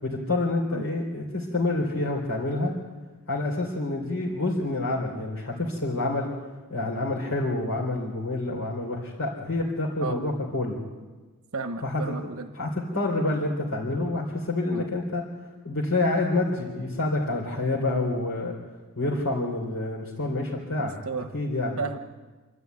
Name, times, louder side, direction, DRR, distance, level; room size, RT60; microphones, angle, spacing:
voice 1, 0.0-2.7 3.3-6.3 6.7-10.8 11.8-12.2 12.5-15.2 15.6-18.6 19.0-20.9 21.3-21.8, left 2 dB, 90° left, -4 dB, 3.6 m, -27 dB
voice 2, 11.5-12.5 14.7-14.9 17.9-18.0 20.8-21.3 21.8-22.0, right 4 dB, 75° right, 7 dB, 1.1 m, -33 dB
27.0 x 13.0 x 9.5 m, 1.3 s
head